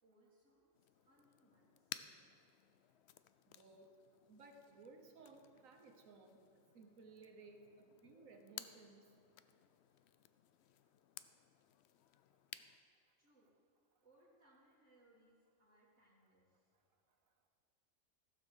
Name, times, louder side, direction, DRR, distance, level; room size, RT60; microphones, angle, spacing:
voice 1, 0.0-2.1 13.2-13.5 14.0-16.7, right 1 dB, 60° right, -8 dB, 2.1 m, -71 dB
sound 1, 0.7-12.8, left 10 dB, 65° left, 0.7 m, -57 dB
voice 2, 3.5-3.9 4.3-9.0, right 3 dB, 90° right, 4 dB, 1.5 m, -60 dB
15.5 x 7.2 x 6.6 m, 2.5 s
omnidirectional pair, 1.3 m